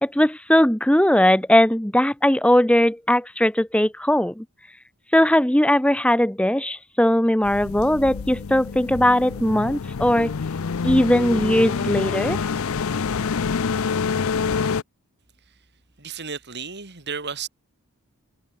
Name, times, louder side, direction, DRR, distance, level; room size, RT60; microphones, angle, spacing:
voice 1, 0.0-4.4 5.1-10.3 10.8-12.5, left 1 dB, 5° left, 1.0 m, -19 dB
sound 1, 7.4-14.8, left 5 dB, 65° left, 0.5 m, -26 dB
voice 2, 16.0-17.5, right 6 dB, 50° right, 3.0 m, -33 dB
head